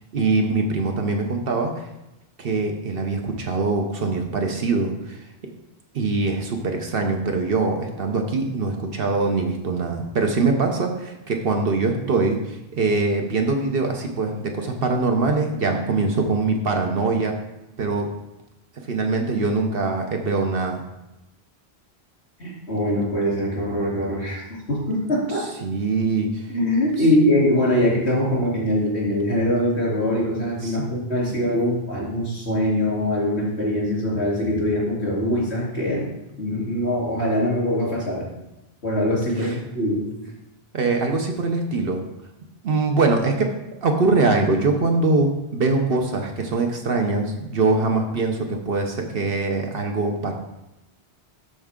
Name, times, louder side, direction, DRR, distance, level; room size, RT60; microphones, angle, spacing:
voice 1, 0.1-1.9 2.4-5.2 5.9-17.3 17.8-18.1 18.9-20.8 25.6-26.5 27.0-27.1 30.6-30.8 31.2-31.3 39.4-39.5 40.7-42.0 42.6-43.5 43.8-50.3, right 3 dB, 65° right, 3 dB, 1.0 m, -23 dB
voice 2, 22.4-24.4 24.7-25.5 26.5-36.1 36.4-38.3 38.8-40.1, left 1 dB, 85° left, -5 dB, 3.5 m, -22 dB
12.0 x 4.6 x 3.7 m, 0.94 s
omnidirectional pair, 1.1 m